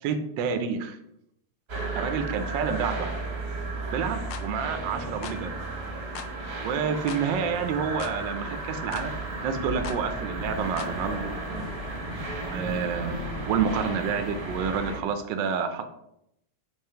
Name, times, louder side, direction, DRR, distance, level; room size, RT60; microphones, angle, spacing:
voice 1, 0.0-1.0 1.9-3.1 3.9-5.5 6.6-9.1 9.4-11.4 12.4-13.2 13.5-15.9, right 6 dB, 70° right, 8 dB, 1.2 m, -29 dB
sound 1, 1.7-15.0, right 2 dB, 40° right, 1.1 m, -34 dB
sound 2, 4.3-4.5 5.2-5.4 6.1-6.3 7.1-7.3 8.0-8.2 8.9-9.1 9.8-10.0 10.8-11.0, left 7 dB, 80° left, 0.9 m, -39 dB
6.7 x 3.2 x 5.5 m, 0.79 s
omnidirectional pair, 2.4 m